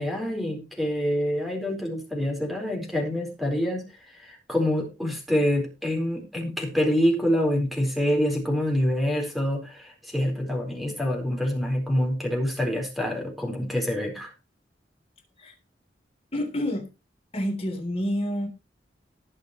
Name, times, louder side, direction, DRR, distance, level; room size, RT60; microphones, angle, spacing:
voice 1, 0.0-14.3, equal, ahead, 1 dB, 4.3 m, -26 dB
voice 2, 16.3-16.9 17.3-18.5, equal, 35° left, 3 dB, 3.4 m, -28 dB
19.5 x 6.7 x 3.1 m, 0.27 s
head